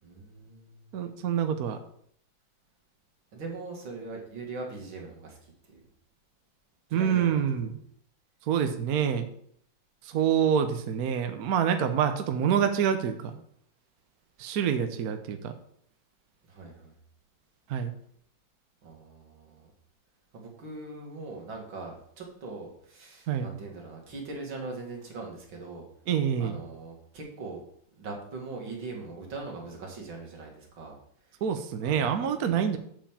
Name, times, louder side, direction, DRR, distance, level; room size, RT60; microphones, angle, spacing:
voice 1, 0.0-0.9 3.3-5.8 6.9-7.4 10.3-10.5 16.4-16.9 18.8-19.7 20.3-25.9 26.4-27.6 28.0-30.9 31.8-32.1 32.4-32.6, right 3 dB, 85° right, 0 dB, 2.9 m, -41 dB
voice 2, 0.9-1.8 6.9-7.8 8.5-9.3 10.0-13.4 14.4-15.5 17.7-17.9 23.3-23.5 26.1-26.6 31.4-32.8, right 8 dB, 60° right, 7 dB, 1.2 m, -26 dB
7.3 x 5.3 x 7.3 m, 0.66 s
omnidirectional pair, 2.1 m